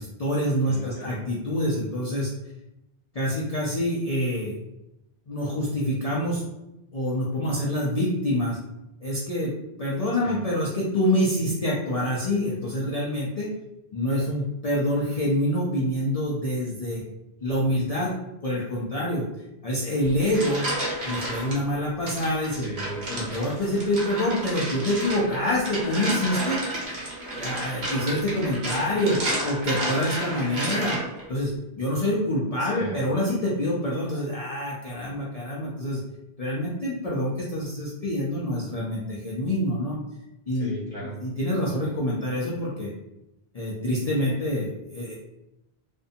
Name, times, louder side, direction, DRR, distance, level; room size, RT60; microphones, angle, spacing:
voice 1, 0.0-2.3 3.1-4.5 5.3-6.4 6.9-8.6 9.0-9.5 9.8-13.5 13.9-17.0 17.4-18.1 18.4-19.2 19.6-20.6 21.0-22.7 23.1-26.6 27.4-31.0 31.3-36.0 36.4-40.0 40.5-40.7 41.2-42.9 43.5-45.1, left 1 dB, 50° left, -5 dB, 0.5 m, -26 dB
voice 2, 0.6-1.3 10.2-10.5 22.6-23.4 32.6-33.1 40.5-41.2, right 2 dB, 35° right, -7 dB, 1.0 m, -38 dB
sound 1, 20.0-21.6 22.1-31.2, right 1 dB, 90° right, 1.2 m, -31 dB
2.6 x 2.2 x 2.6 m, 0.91 s
omnidirectional pair, 1.0 m